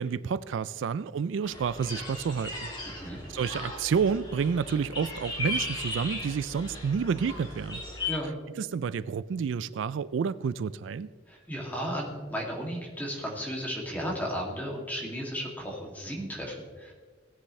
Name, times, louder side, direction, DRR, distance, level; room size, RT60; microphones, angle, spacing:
voice 1, 0.0-2.7 3.3-7.8 8.6-11.1, right 6 dB, 85° right, 17 dB, 0.3 m, -29 dB
sound 1, 1.4-8.1, left 2 dB, 25° left, 3.2 m, -37 dB
voice 2, 2.9-3.2 8.1-8.3 11.3-16.9, equal, 10° left, -2 dB, 2.4 m, -34 dB
17.5 x 9.9 x 3.2 m, 1.5 s
head